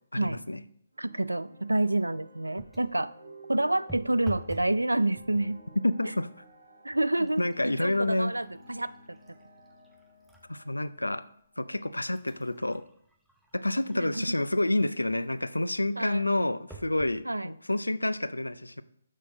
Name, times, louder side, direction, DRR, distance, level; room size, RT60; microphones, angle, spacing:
voice 1, 0.1-0.6 5.8-6.3 7.4-8.3 10.5-11.2 11.6-12.8 13.5-18.8, left 1 dB, 85° left, 14 dB, 0.4 m, -29 dB
sound 1, 0.9-12.2, equal, 65° right, 1.9 m, -54 dB
voice 2, 1.0-3.1 3.5-5.6 6.8-9.2 13.9-14.3 16.0-16.2 17.2-17.5, right 2 dB, 85° right, 16 dB, 0.4 m, -28 dB
sound 2, 2.5-3.0 3.9-4.8 5.1-5.6 6.4-6.5 6.9-10.5 11.0-11.1 11.8-14.5 16.7-17.2 17.9-18.0 18.2-18.3, right 3 dB, 5° right, 0.7 m, -49 dB
6.4 x 5.8 x 5.1 m, 0.67 s
figure-of-eight pair, 140°, 0 cm